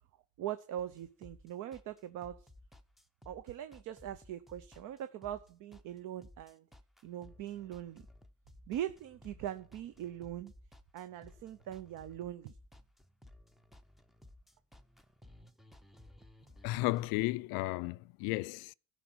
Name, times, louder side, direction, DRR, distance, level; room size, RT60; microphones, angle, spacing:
voice 1, 0.4-2.5 3.3-6.7 7.0-8.0 8.7-10.5 10.9-12.6, right 11 dB, 55° right, 0.8 m, -41 dB
sound 1, 0.8-17.2, left 1 dB, ahead, 0.5 m, -58 dB
voice 2, 16.6-18.7, left 20 dB, 75° left, 0.5 m, -34 dB
14.0 x 5.2 x 6.1 m
cardioid pair, 135°, 37 cm